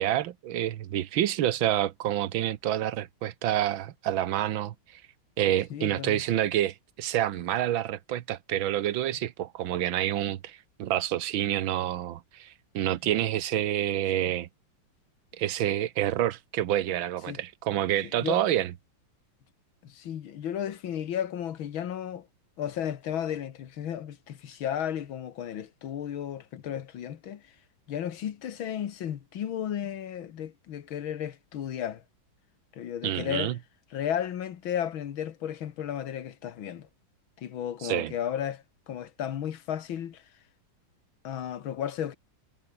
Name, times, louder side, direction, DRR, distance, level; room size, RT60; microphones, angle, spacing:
voice 1, 0.0-5.0 5.4-14.5 15.3-18.7 33.0-33.6 37.8-38.1, right 12 dB, 80° right, 1.7 m, -28 dB
voice 2, 5.7-6.2 17.3-17.4 18.2-18.4 19.8-22.3 22.6-27.4 27.9-32.0 32.7-33.5 33.9-36.9 37.4-40.2 41.2-42.1, left 9 dB, 85° left, 2.1 m, -34 dB
omnidirectional pair, 2.2 m